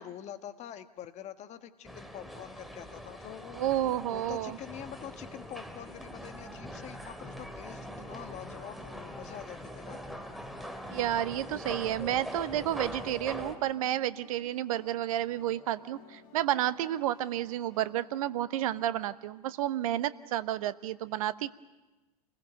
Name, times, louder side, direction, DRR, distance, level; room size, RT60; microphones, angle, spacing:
voice 1, 0.0-3.6 4.1-10.0, left 10 dB, 35° left, 10 dB, 1.4 m, -45 dB
sound 1, 1.8-13.5, equal, ahead, 2.6 m, -42 dB
voice 2, 3.6-4.6 10.9-21.5, right 12 dB, 60° right, 15 dB, 0.9 m, -31 dB
sound 2, 13.0-18.0, left 5 dB, 55° left, 4.1 m, -57 dB
29.0 x 20.5 x 6.9 m, 1.1 s
figure-of-eight pair, 90°, 20 cm